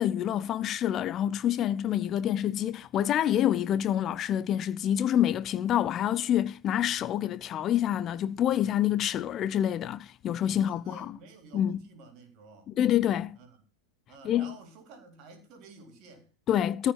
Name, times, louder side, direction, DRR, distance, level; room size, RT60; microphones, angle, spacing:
voice 1, 0.0-11.1 11.5-11.8 12.7-13.4 14.2-14.5 16.5-16.9, left 11 dB, 30° left, 0.5 m, -27 dB
voice 2, 10.5-12.7 13.4-13.6 14.1-16.3, right 4 dB, 40° right, 3.7 m, -51 dB
14.0 x 5.7 x 7.1 m
figure-of-eight pair, 90°, 0 cm